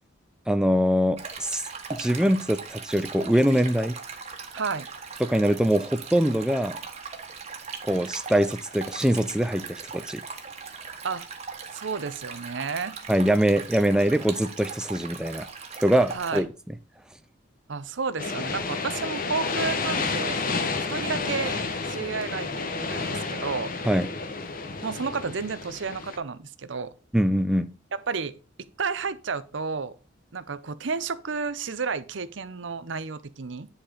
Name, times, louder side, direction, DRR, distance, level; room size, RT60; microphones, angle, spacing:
voice 1, 0.5-1.6 1.9-4.0 5.2-6.8 7.9-10.2 13.1-15.5 15.8-16.5 23.9-24.1 27.1-27.7, equal, 5° right, 0.4 m, -23 dB
Stream, 1.2-16.4, right 5 dB, 35° right, 1.5 m, -39 dB
voice 2, 4.5-4.9 11.0-11.2 11.7-13.0 16.1-16.4 17.7-20.4 20.9-21.6 21.8-22.5 22.8-23.7 24.8-26.9 28.1-29.9 30.3-33.7, right 5 dB, 70° right, 0.7 m, -31 dB
sound 1, 18.2-26.2, left 4 dB, 45° left, 1.1 m, -30 dB
10.5 x 4.3 x 5.0 m
head